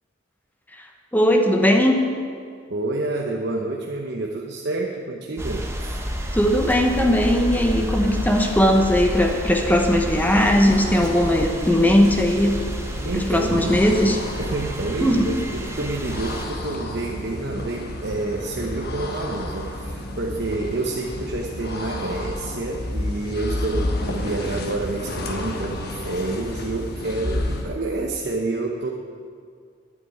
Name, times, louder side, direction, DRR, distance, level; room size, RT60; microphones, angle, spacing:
voice 1, 1.1-2.0 6.3-12.6 13.1-14.2 15.0-15.3, equal, 10° left, 3 dB, 1.0 m, -19 dB
voice 2, 2.7-6.0 13.0-28.9, right 2 dB, 60° right, 0 dB, 0.9 m, -28 dB
sound 1, 5.4-16.4, equal, 15° right, 1.4 m, -30 dB
sound 2, 10.0-27.8, left 1 dB, 55° left, 1.4 m, -31 dB
9.6 x 8.1 x 9.6 m, 2.2 s
head